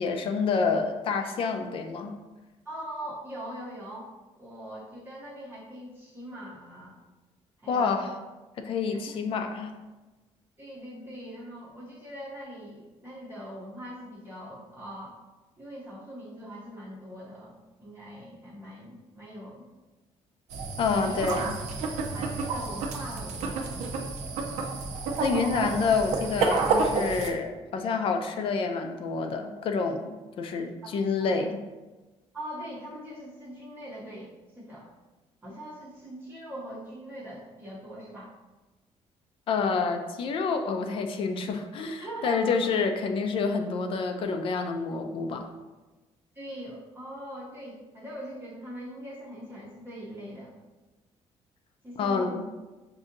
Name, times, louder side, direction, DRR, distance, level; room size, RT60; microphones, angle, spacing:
voice 1, 0.0-2.1 7.7-8.1 8.6-9.7 20.8-21.5 25.2-31.6 39.5-45.5 52.0-52.4, left 5 dB, 50° left, 5 dB, 0.4 m, -28 dB
voice 2, 2.6-4.1 4.4-7.0 7.6-8.1 8.9-9.2 10.6-15.2 15.6-19.7 20.9-21.2 22.1-23.8 30.8-31.4 32.3-34.9 35.4-38.3 42.0-42.5 46.3-50.5 51.8-52.3, equal, 20° right, -6 dB, 0.7 m, -42 dB
sound 1, 20.5-27.3, right 4 dB, 85° right, 0.6 m, -30 dB
6.2 x 2.6 x 2.5 m, 1.2 s
cardioid pair, 165°, 12 cm